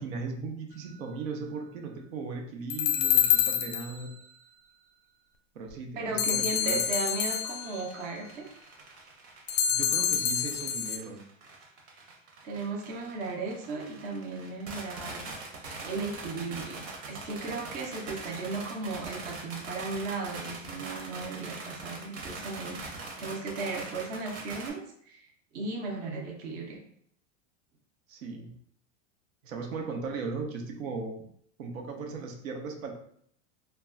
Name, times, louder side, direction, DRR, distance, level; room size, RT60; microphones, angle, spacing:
voice 1, 0.0-4.1 5.5-6.8 9.7-11.2 28.1-28.5 29.4-31.2 31.6-32.9, right 4 dB, 85° right, 2 dB, 0.8 m, -37 dB
sound 1, 2.7-4.0 6.2-7.8 9.5-11.0, left 9 dB, 55° left, 0.5 m, -27 dB
voice 2, 6.0-8.5 12.4-15.5 15.8-16.8 17.1-22.8 23.2-24.8 25.1-25.3 25.5-26.8, right 3 dB, 25° right, 0 dB, 0.4 m, -36 dB
sound 2, 6.6-24.7, right 3 dB, 55° right, 0.9 m, -43 dB
2.2 x 2.0 x 3.5 m, 0.65 s
supercardioid pair, 140°, 39 cm